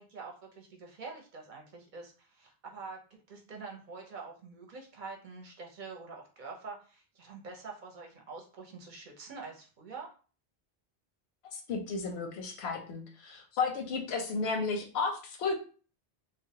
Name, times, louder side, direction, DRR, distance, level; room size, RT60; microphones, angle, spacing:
voice 1, 0.0-3.0 3.3-10.1, right 4 dB, 55° right, 1 dB, 0.7 m, -46 dB
voice 2, 11.4-15.5, left 4 dB, 85° left, 4 dB, 0.8 m, -33 dB
2.3 x 2.1 x 2.7 m, 0.38 s
omnidirectional pair, 1.0 m